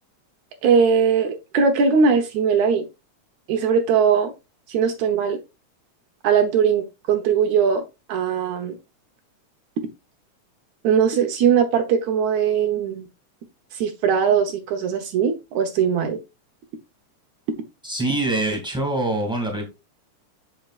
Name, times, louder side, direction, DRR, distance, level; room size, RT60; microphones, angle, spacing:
voice 1, 0.6-2.9 3.5-4.3 4.7-5.4 6.2-7.8 8.1-8.8 10.8-13.0 13.8-16.2, right 6 dB, 75° right, 2.4 m, -20 dB
voice 2, 17.8-19.7, right 2 dB, ahead, 2.0 m, -24 dB
8.0 x 6.5 x 2.5 m
omnidirectional pair, 3.3 m